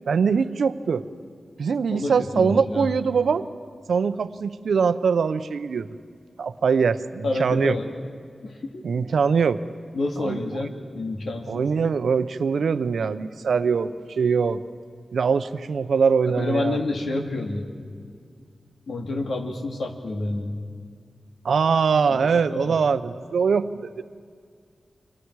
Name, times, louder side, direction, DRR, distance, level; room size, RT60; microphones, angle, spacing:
voice 1, 0.1-1.0 1.6-3.5 3.9-5.9 6.4-7.7 8.8-9.6 10.2-10.4 11.5-14.6 15.1-16.8 21.4-24.0, right 5 dB, 85° right, 12 dB, 0.7 m, -22 dB
voice 2, 1.9-2.9 7.2-7.9 8.4-8.8 9.9-11.7 16.3-17.7 18.9-20.6 22.1-22.7, left 2 dB, 70° left, 3 dB, 2.3 m, -29 dB
29.5 x 25.5 x 4.8 m, 2.1 s
wide cardioid pair, 95°, 0 cm